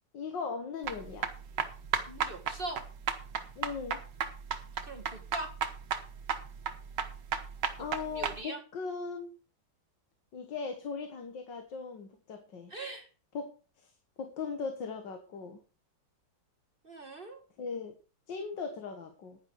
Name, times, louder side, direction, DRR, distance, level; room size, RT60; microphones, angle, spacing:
voice 1, 0.1-1.3 3.6-4.0 7.8-9.3 10.3-12.7 13.3-13.5 13.8-13.9 14.2-15.6 17.6-18.0 18.3-19.4, left 5 dB, 85° left, 5 dB, 2.2 m, -38 dB
sound 1, 0.8-8.4, right 7 dB, 75° right, 1.9 m, -34 dB
voice 2, 2.1-2.8 4.8-5.5 8.0-8.6 12.7-13.1 16.8-17.4, right 2 dB, 30° right, 4 dB, 1.8 m, -41 dB
11.0 x 10.0 x 4.6 m, 0.36 s
omnidirectional pair, 1.9 m